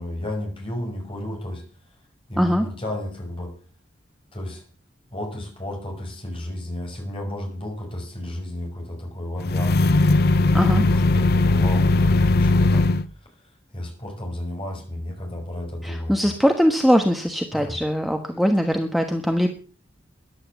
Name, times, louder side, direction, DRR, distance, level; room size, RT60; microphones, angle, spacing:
voice 1, 0.0-1.6 2.3-3.5 4.3-4.6 5.1-10.2 10.5-12.8 13.7-16.3 17.5-17.8, left 1 dB, 30° left, 2 dB, 6.0 m, -32 dB
sound 1, 9.4-13.0, left 2 dB, 55° left, 0.7 m, -18 dB
voice 2, 10.5-10.8 15.8-19.5, equal, ahead, 4 dB, 1.2 m, -21 dB
14.5 x 11.5 x 7.1 m, 0.41 s
head